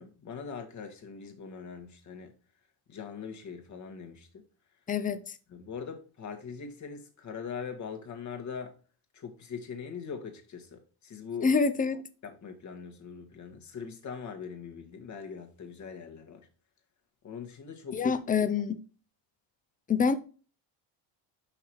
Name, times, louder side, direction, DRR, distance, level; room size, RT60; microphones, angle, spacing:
voice 1, 0.0-2.3 2.9-4.4 5.5-8.8 9.1-11.5 12.2-16.5 17.2-18.2, left 6 dB, 35° left, 1.4 m, -41 dB
voice 2, 4.9-5.2 11.4-12.0 17.9-18.8 19.9-20.2, left 5 dB, 20° left, 0.5 m, -26 dB
5.7 x 5.0 x 4.4 m
cardioid pair, 125°, 48 cm